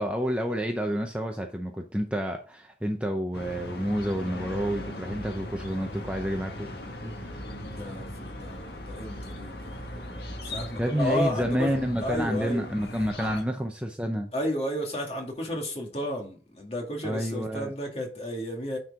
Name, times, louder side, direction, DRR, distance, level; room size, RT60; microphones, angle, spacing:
voice 1, 0.0-6.7 7.0-7.4 10.8-14.3 17.0-17.7, equal, 5° right, 0.6 m, -29 dB
sound 1, 3.3-13.4, left 1 dB, 65° left, 1.7 m, -39 dB
voice 2, 7.6-11.7 12.0-12.7 13.2-13.4 14.3-18.8, left 1 dB, 35° left, 2.2 m, -33 dB
9.8 x 4.5 x 3.7 m
head